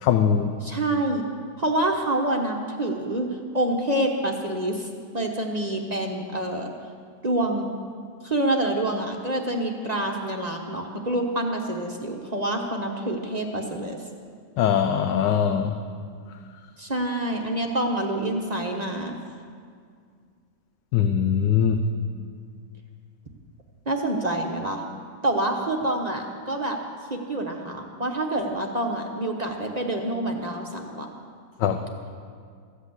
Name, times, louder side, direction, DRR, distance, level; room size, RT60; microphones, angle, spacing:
voice 1, 0.0-0.5 14.6-15.8 20.9-21.8 31.6-31.8, left 8 dB, 90° left, 6 dB, 1.3 m, -21 dB
voice 2, 0.6-1.3 1.6-4.9 5.1-6.7 7.2-7.7 8.2-14.0 16.8-19.2 23.9-24.8 25.2-26.8 27.1-31.1, right 1 dB, 30° right, 2 dB, 0.8 m, -27 dB
14.5 x 8.3 x 8.0 m, 2.1 s
omnidirectional pair, 1.8 m